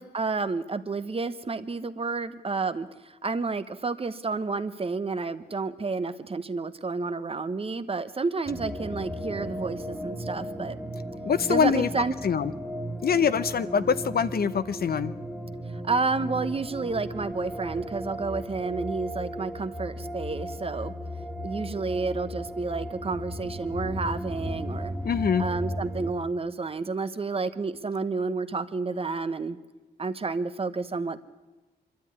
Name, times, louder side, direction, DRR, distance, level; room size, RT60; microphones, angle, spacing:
voice 1, 0.0-10.8 11.5-12.1 15.8-20.9 21.4-24.9 25.4-29.6 30.0-31.2, right 4 dB, 35° right, 12 dB, 0.9 m, -30 dB
sound 1, 8.4-26.1, equal, 5° right, 1.9 m, -35 dB
voice 2, 11.3-11.9 12.2-12.5 13.0-15.1 25.0-25.5, left 7 dB, 60° left, 14 dB, 0.8 m, -24 dB
25.5 x 12.5 x 9.6 m, 1.2 s
wide cardioid pair, 135°, 17 cm